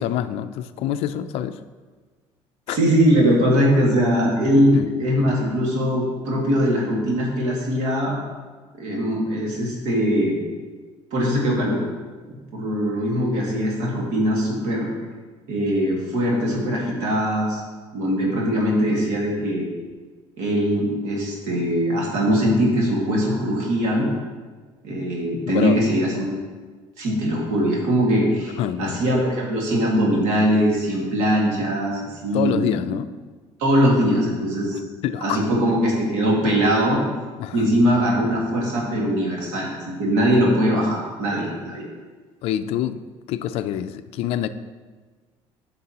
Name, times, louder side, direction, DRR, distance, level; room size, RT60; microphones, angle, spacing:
voice 1, 0.0-1.6 2.7-2.8 4.5-4.9 25.4-25.8 28.6-29.0 32.3-33.1 35.0-35.4 37.4-37.8 42.4-43.0 43.3-44.5, left 11 dB, 60° left, 11 dB, 0.4 m, -26 dB
voice 2, 2.7-8.2 8.7-10.4 11.1-11.8 12.5-14.9 15.5-17.6 17.9-19.7 20.4-24.1 24.8-26.3 27.0-32.7 33.6-34.8 35.2-37.0 37.5-41.8, equal, 80° right, -2 dB, 1.9 m, -21 dB
9.3 x 6.7 x 2.9 m, 1.4 s
cardioid pair, 155°, 11 cm